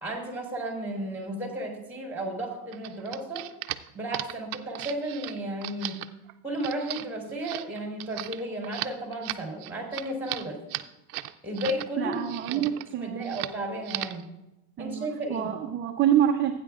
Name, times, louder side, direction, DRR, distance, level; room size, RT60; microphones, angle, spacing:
voice 1, 0.0-3.4 3.9-5.9 6.4-10.6 11.4-12.7 13.0-14.2 14.8-15.5, right 1 dB, 5° right, 0 dB, 3.4 m, -33 dB
sound 1, 2.7-11.9 12.1-12.9 13.2-13.6 13.8-14.2, right 17 dB, 75° right, 0.7 m, -36 dB
voice 2, 12.0-13.4 14.8-16.5, right 10 dB, 25° right, 3 dB, 0.7 m, -26 dB
14.5 x 9.5 x 2.4 m, 0.93 s
supercardioid pair, 130°, 44 cm